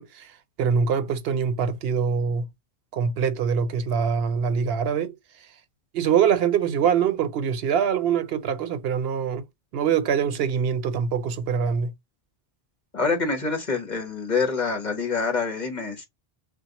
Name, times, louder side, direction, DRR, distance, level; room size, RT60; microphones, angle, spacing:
voice 1, 0.0-2.5 2.9-5.5 5.9-9.4 9.7-11.9, right 7 dB, 75° right, 0.8 m, -24 dB
voice 2, 12.9-16.1, left 4 dB, 45° left, 1.4 m, -26 dB
6.0 x 2.0 x 2.9 m
omnidirectional pair, 1.0 m